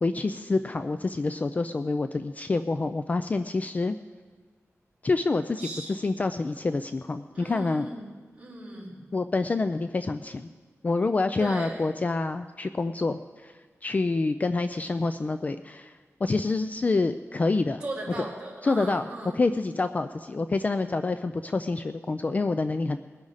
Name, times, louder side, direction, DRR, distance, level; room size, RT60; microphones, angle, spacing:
voice 1, 0.0-3.9 5.0-7.9 9.1-10.5 10.8-13.5 13.8-17.8 18.6-19.0 19.3-23.0, left 3 dB, 30° left, 10 dB, 0.3 m, -27 dB
voice 2, 5.6-5.9 7.3-8.1 8.3-9.0 11.4-11.8 17.8-19.4, right 2 dB, 20° right, -7 dB, 4.7 m, -37 dB
21.0 x 9.8 x 4.1 m, 1.4 s
wide cardioid pair, 160°, 5 cm